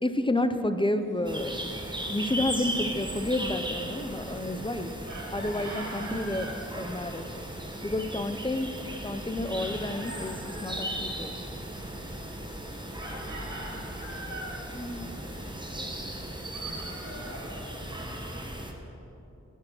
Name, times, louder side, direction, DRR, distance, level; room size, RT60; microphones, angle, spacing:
voice 1, 0.0-1.7 2.1-4.9 5.3-7.4 7.8-11.3 14.7-15.1, left 1 dB, 15° left, 9 dB, 0.6 m, -30 dB
sound 1, 0.9-18.7, left 1 dB, 80° left, 2.9 m, -54 dB
sound 2, 1.2-18.7, right 1 dB, 15° right, 1.4 m, -37 dB
Chicken rooster, 5.1-6.6 9.5-10.9 13.0-14.6 16.5-18.1, right 1 dB, 90° right, 2.7 m, -42 dB
voice 2, 13.0-13.4 15.1-15.3 16.6-17.8, left 2 dB, 45° left, -3 dB, 2.3 m, -48 dB
11.0 x 10.0 x 6.1 m, 2.9 s
wide cardioid pair, 55°, 30 cm